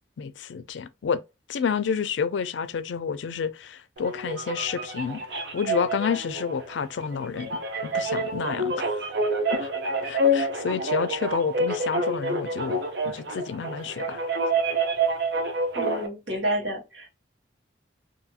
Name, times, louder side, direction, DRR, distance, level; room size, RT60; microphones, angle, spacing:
voice 1, 0.2-1.2 1.5-7.5 7.8-9.0 9.5-9.7 10.0-12.8 13.0-14.2, left 6 dB, 80° left, 0.4 m, -29 dB
sound 1, 4.0-16.1, right 1 dB, 65° right, 0.6 m, -28 dB
voice 2, 15.7-17.1, right 1 dB, 85° right, 1.3 m, -29 dB
2.7 x 2.7 x 2.3 m
head